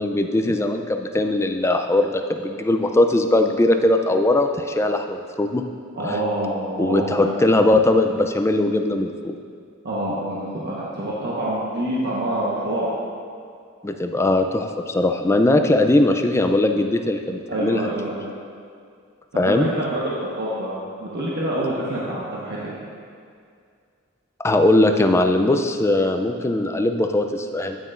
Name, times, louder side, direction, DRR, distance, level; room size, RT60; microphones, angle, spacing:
voice 1, 0.0-5.6 6.0-6.2 6.8-9.4 13.8-17.9 19.3-19.7 24.4-27.8, left 2 dB, 15° left, 5 dB, 0.3 m, -20 dB
voice 2, 5.9-7.3 9.8-12.9 17.5-18.3 19.3-22.6, right 1 dB, 50° right, -7 dB, 1.2 m, -26 dB
9.3 x 9.0 x 2.5 m, 2.2 s
head